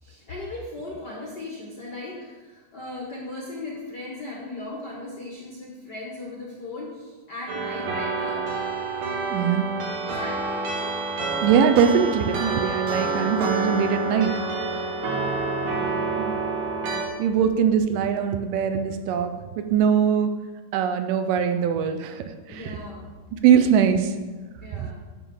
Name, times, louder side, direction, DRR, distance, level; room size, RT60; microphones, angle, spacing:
voice 1, 0.0-8.4 9.7-11.0 14.9-15.6 22.5-23.1 24.6-24.9, left 2 dB, 65° left, -3 dB, 1.0 m, -38 dB
sound 1, 7.5-17.0, right 3 dB, 55° right, 2.6 m, -28 dB
voice 2, 9.3-9.7 11.4-14.3 16.2-16.4 17.2-20.3 20.7-22.2 22.5-22.6 23.4-24.1, right 8 dB, 80° right, 7 dB, 2.2 m, -21 dB
11.0 x 3.7 x 7.0 m, 1.3 s
omnidirectional pair, 4.0 m